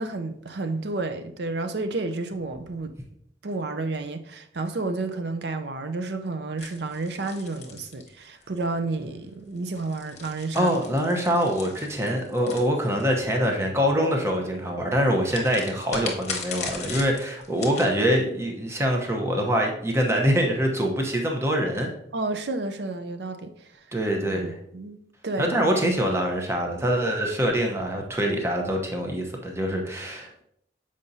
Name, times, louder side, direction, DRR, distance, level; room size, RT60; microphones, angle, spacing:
voice 1, 0.0-2.9 3.4-10.7 22.1-23.7 24.4-25.0 25.2-25.6, right 3 dB, 65° right, 0.6 m, -31 dB
sound 1, 6.6-8.6 9.6-13.3 15.3-17.9, left 5 dB, 40° left, 1.0 m, -38 dB
voice 2, 10.5-21.9 23.9-24.6 25.4-30.4, equal, 15° right, 0.8 m, -24 dB
7.2 x 4.9 x 2.7 m
head